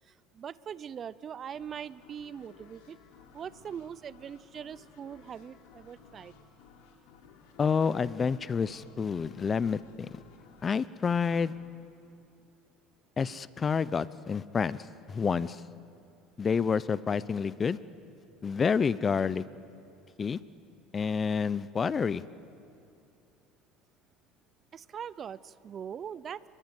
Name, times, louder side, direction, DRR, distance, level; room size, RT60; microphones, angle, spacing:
voice 1, 0.1-3.0 3.3-6.4 24.7-26.5, right 8 dB, 40° right, 19 dB, 0.7 m, -41 dB
sound 1, 1.5-13.0, left 6 dB, 75° left, 3.9 m, -57 dB
voice 2, 7.6-10.2 10.6-11.5 13.2-14.8 15.1-15.6 16.4-17.8 18.4-19.4 20.2-20.4 20.9-22.2, left 6 dB, 30° left, 18 dB, 0.8 m, -28 dB
29.0 x 22.0 x 9.4 m, 2.5 s
supercardioid pair, 90°, 0 cm